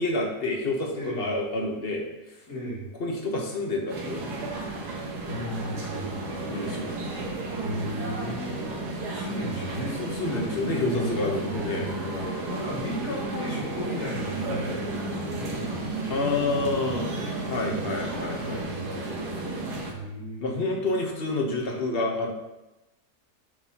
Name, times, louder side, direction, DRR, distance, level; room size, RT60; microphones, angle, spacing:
voice 1, 0.0-2.1 3.0-4.5 6.5-7.1 10.0-12.7 16.1-18.7 19.2-19.5 20.4-22.3, left 2 dB, 45° left, 1 dB, 1.1 m, -29 dB
voice 2, 0.9-1.2 2.5-2.9 5.2-6.2 7.6-8.8 9.1-10.0 10.8-11.9 12.5-17.9 18.3-19.0 19.9-20.9 21.6-21.8, equal, 70° left, -8 dB, 2.9 m, -36 dB
sound 1, 3.9-19.9, right 2 dB, 85° right, 1.6 m, -33 dB
9.3 x 4.0 x 2.9 m, 0.98 s
omnidirectional pair, 1.7 m